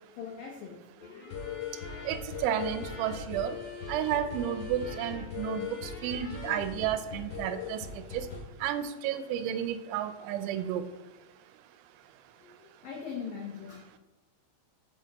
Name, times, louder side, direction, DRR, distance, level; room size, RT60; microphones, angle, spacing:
voice 1, 0.2-0.8 12.4-13.9, left 6 dB, 90° left, -1 dB, 1.9 m, -41 dB
sound 1, 1.0-8.4, left 6 dB, 45° left, 2.0 m, -39 dB
voice 2, 2.1-3.6 3.9-7.9 8.1-8.3 8.6-10.8, right 10 dB, 85° right, 11 dB, 2.9 m, -32 dB
6.3 x 5.8 x 4.0 m, 1.1 s
omnidirectional pair, 5.3 m